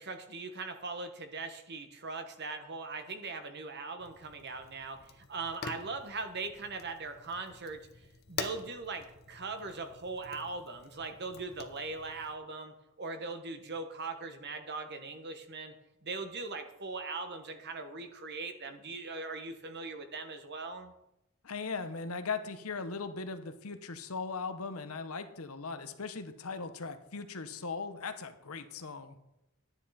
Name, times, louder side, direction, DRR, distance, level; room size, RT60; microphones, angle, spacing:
voice 1, 0.0-15.7 16.0-20.9, right 3 dB, 50° right, 7 dB, 1.2 m, -40 dB
Fire, 4.0-12.4, left 5 dB, 45° left, 0.9 m, -47 dB
voice 2, 21.4-29.2, left 4 dB, 75° left, 10 dB, 1.0 m, -39 dB
11.0 x 10.0 x 4.2 m, 0.87 s
head